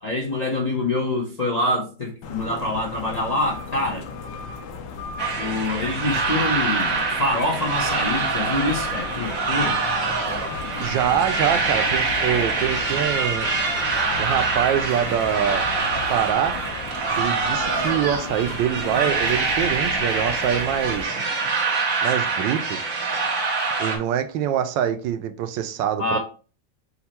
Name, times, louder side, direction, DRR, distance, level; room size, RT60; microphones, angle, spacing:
voice 1, 0.0-4.0 5.4-9.8 26.0-26.2, left 2 dB, 45° left, 0.5 m, -25 dB
sound 1, 2.2-21.0, left 4 dB, 75° left, 1.3 m, -35 dB
sound 2, 5.2-24.0, right 4 dB, 50° right, 1.4 m, -25 dB
voice 2, 10.8-13.5 14.2-15.7 16.1-16.6 17.2-21.2 22.0-22.8 23.8-26.2, right 9 dB, 85° right, 1.3 m, -24 dB
5.6 x 2.1 x 4.2 m
omnidirectional pair, 1.9 m